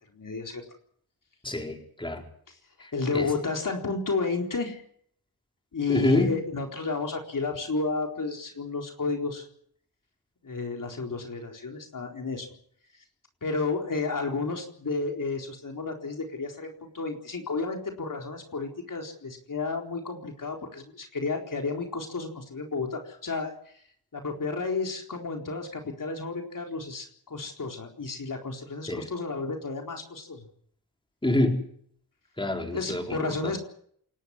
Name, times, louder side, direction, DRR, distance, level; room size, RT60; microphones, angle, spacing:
voice 1, 0.1-0.6 2.5-2.6 2.9-4.8 5.7-9.5 10.4-12.5 13.4-23.8 24.1-30.4 32.7-33.6, left 4 dB, 55° left, 2 dB, 4.2 m, -32 dB
voice 2, 1.4-2.2 3.1-3.3 5.9-6.3 28.9-29.0 31.2-31.6 32.4-33.2, left 1 dB, 15° left, 3 dB, 4.5 m, -26 dB
28.0 x 12.0 x 9.8 m, 0.63 s
cardioid pair, 80°, 38 cm